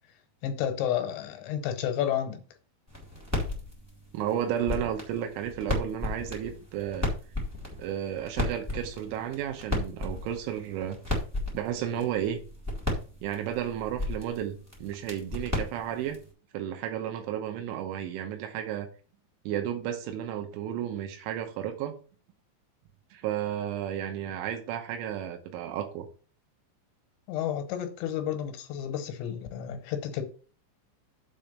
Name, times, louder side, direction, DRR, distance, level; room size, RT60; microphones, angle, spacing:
voice 1, 0.4-2.4 27.3-30.2, left 10 dB, 75° left, 3.1 m, -31 dB
sound 1, 2.9-16.3, left 2 dB, 5° right, 1.3 m, -35 dB
voice 2, 4.1-7.1 7.8-11.0 11.5-12.4 13.2-16.2 16.5-18.9 19.5-21.9 23.1-26.1, right 10 dB, 90° right, 3.4 m, -32 dB
7.6 x 4.2 x 6.6 m
omnidirectional pair, 5.4 m